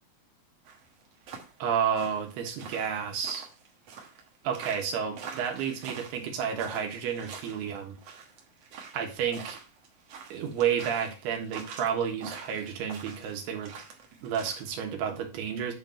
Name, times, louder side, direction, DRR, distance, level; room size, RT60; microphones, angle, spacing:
sound 1, 0.7-14.7, right 6 dB, 60° right, 1.8 m, -45 dB
voice 1, 1.6-3.5 4.4-8.0 8.9-9.6 10.3-13.7 14.2-15.7, right 8 dB, 90° right, 3.4 m, -31 dB
8.9 x 4.0 x 4.3 m
omnidirectional pair, 4.4 m